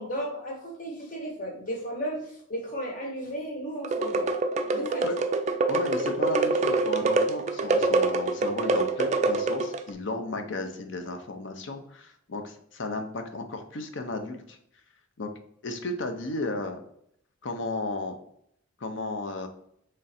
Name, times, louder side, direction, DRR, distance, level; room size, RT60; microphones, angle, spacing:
voice 1, 0.0-4.3 4.7-5.1, equal, 40° left, 1 dB, 1.1 m, -34 dB
sound 1, 3.8-9.9, right 3 dB, 35° right, 0.3 m, -25 dB
voice 2, 5.7-14.6 15.2-15.3 15.6-16.8 17.4-18.2 18.8-19.5, left 2 dB, 60° left, 6 dB, 0.6 m, -34 dB
3.7 x 3.2 x 4.2 m, 0.72 s
head